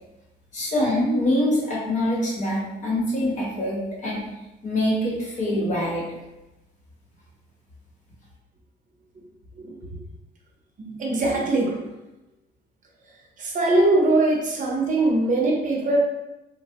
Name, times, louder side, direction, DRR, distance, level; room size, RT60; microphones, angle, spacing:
voice 1, 0.5-4.3 4.6-6.0, left 1 dB, 45° left, -4 dB, 0.9 m, -24 dB
voice 2, 9.6-9.9 10.8-11.8 13.4-16.0, right 2 dB, 45° right, -1 dB, 0.6 m, -22 dB
3.3 x 2.0 x 2.8 m, 1.0 s
cardioid pair, 135°, 18 cm